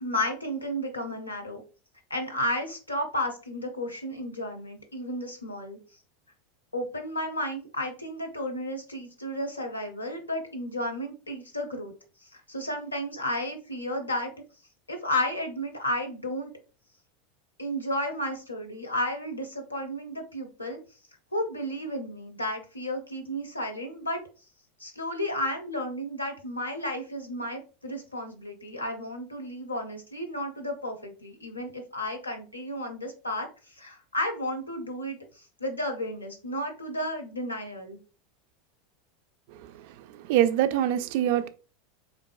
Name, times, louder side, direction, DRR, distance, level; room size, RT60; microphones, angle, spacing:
voice 1, 0.0-1.6 2.1-5.8 6.7-11.9 12.3-14.3 14.9-16.5 17.6-20.8 21.3-24.2 24.8-38.0, left 1 dB, 90° left, 0.6 m, -33 dB
voice 2, 39.5-41.5, right 11 dB, 55° right, 0.3 m, -25 dB
3.7 x 2.5 x 2.2 m
figure-of-eight pair, 85°, 0 cm